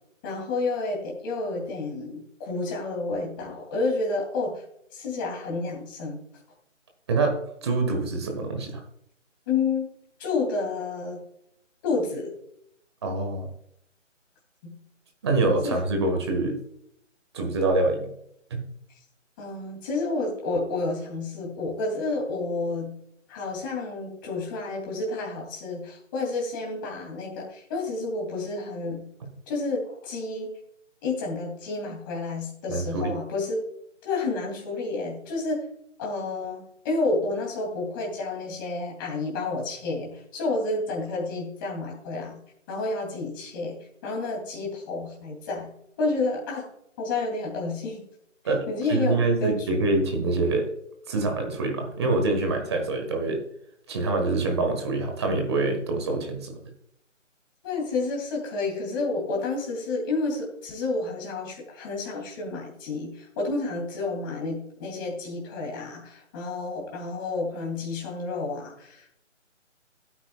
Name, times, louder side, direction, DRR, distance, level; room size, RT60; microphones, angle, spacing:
voice 1, 0.2-4.6 4.9-6.2 9.5-9.9 10.2-11.2 11.8-12.3 14.6-14.7 15.6-15.8 19.4-22.9 23.3-29.1 29.5-30.5 31.0-33.6 34.0-35.6 36.0-42.4 42.7-43.8 44.0-45.7 46.0-46.6 47.0-48.0 48.7-49.8 57.6-69.2, left 3 dB, 15° left, -2 dB, 2.9 m, -30 dB
voice 2, 7.1-8.8 13.0-13.5 15.2-16.6 17.3-18.1 18.5-18.6 32.7-33.1 48.4-48.6 48.9-50.7 51.1-53.4 53.9-56.6, right 3 dB, 20° right, 3 dB, 1.5 m, -25 dB
15.5 x 9.0 x 2.4 m, 0.73 s
figure-of-eight pair, 160°, 38 cm